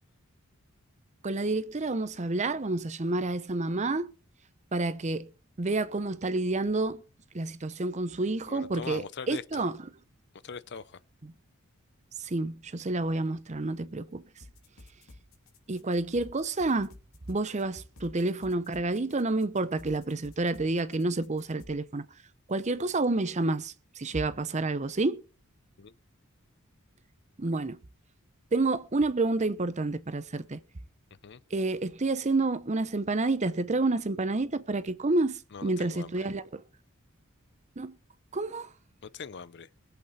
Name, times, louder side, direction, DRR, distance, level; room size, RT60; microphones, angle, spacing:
voice 1, 1.2-4.1 4.7-5.3 5.6-7.0 7.3-9.7 12.2-14.2 15.7-16.9 17.3-22.1 22.5-25.2 27.4-27.8 28.5-30.6 31.5-36.6 37.8-37.9 38.3-38.7, right 2 dB, 30° right, 0.7 m, -29 dB
voice 2, 8.5-9.6 10.4-11.0 25.8-25.9 27.4-27.6 31.2-31.4 35.5-36.1 39.0-39.7, left 5 dB, 50° left, 0.6 m, -41 dB
sound 1, 14.4-21.7, left 1 dB, 70° left, 3.0 m, -52 dB
21.5 x 8.0 x 4.2 m
head